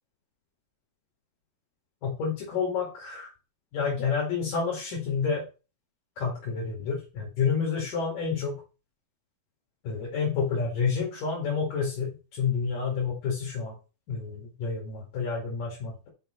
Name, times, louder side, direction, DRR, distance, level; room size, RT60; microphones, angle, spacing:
voice 1, 2.0-3.3 3.7-5.4 6.2-8.6 9.8-13.7 14.1-16.1, left 5 dB, 70° left, -3 dB, 4.0 m, -29 dB
9.2 x 5.7 x 4.5 m, 0.32 s
omnidirectional pair, 4.1 m